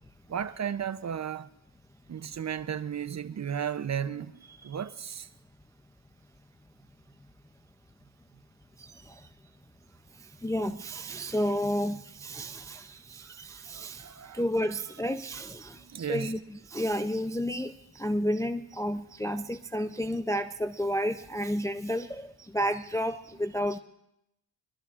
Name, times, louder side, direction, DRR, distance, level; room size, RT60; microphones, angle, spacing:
voice 1, 0.3-1.5 2.1-5.3 13.7-14.4 15.8-16.3, right 8 dB, 35° right, 0.6 m, -34 dB
voice 2, 8.8-9.2 10.4-23.8, equal, 5° left, 0.4 m, -31 dB
23.0 x 12.5 x 2.5 m
cardioid pair, 70°, 49 cm